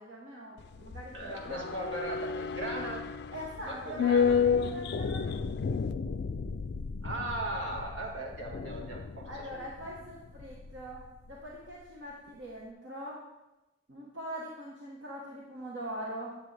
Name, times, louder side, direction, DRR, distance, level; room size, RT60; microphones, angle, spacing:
voice 1, 0.0-1.8 3.3-5.4 9.2-13.2 13.9-16.4, right 1 dB, 70° right, -4 dB, 1.4 m, -42 dB
sound 1, 0.6-11.0 11.3-11.4, left 6 dB, 65° left, 0.4 m, -32 dB
voice 2, 1.1-3.1 3.6-4.4 7.0-9.6, right 1 dB, 90° right, -1 dB, 1.8 m, -38 dB
9.8 x 7.2 x 3.4 m, 1.0 s
head